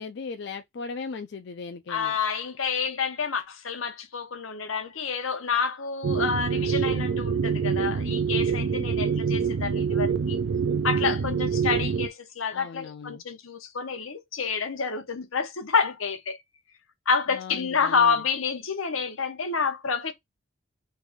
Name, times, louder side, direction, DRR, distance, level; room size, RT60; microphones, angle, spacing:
voice 1, 0.0-2.1 12.5-13.2 17.3-18.2, left 4 dB, 55° left, 0.4 m, -38 dB
voice 2, 1.9-10.4 10.8-16.4 17.1-20.1, left 5 dB, 85° left, 0.9 m, -28 dB
sound 1, 6.0-12.1, right 6 dB, 70° right, 0.4 m, -25 dB
3.4 x 2.6 x 3.5 m
head